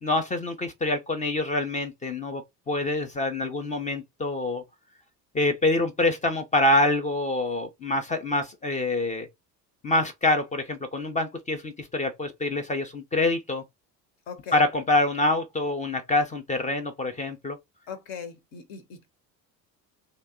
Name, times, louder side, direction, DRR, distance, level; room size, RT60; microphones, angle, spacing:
voice 1, 0.0-4.6 5.3-9.3 9.8-13.6 14.5-17.6, left 2 dB, 15° left, 0.4 m, -26 dB
voice 2, 14.3-14.6 17.9-19.1, left 7 dB, 60° left, 0.9 m, -39 dB
2.8 x 2.1 x 3.5 m
figure-of-eight pair, 65°, 50 cm